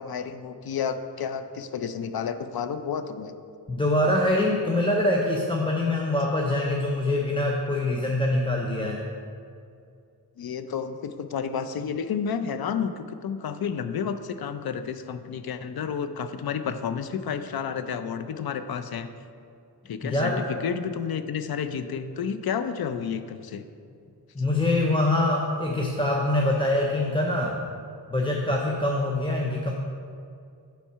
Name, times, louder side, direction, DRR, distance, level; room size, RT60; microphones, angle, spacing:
voice 1, 0.0-3.3 10.4-19.1 19.9-23.6, left 7 dB, 60° left, 9 dB, 0.5 m, -31 dB
voice 2, 3.7-9.0 20.0-20.4 24.3-27.6 28.1-29.7, left 1 dB, 15° left, -1 dB, 0.5 m, -24 dB
7.3 x 4.5 x 5.6 m, 2.4 s
wide cardioid pair, 105°, 41 cm